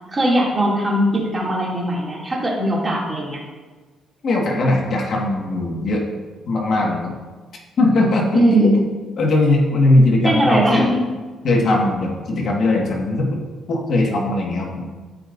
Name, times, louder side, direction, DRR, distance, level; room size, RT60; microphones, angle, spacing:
voice 1, 0.1-3.4 8.3-8.7 10.2-11.0, right 1 dB, 25° right, -4 dB, 2.5 m, -19 dB
voice 2, 4.2-6.0 6.5-7.1 7.8-8.7 9.2-10.9 11.4-13.4 13.7-14.8, left 2 dB, 60° left, -1 dB, 1.6 m, -19 dB
14.0 x 5.2 x 2.6 m, 1.3 s
cardioid pair, 90°, 0 cm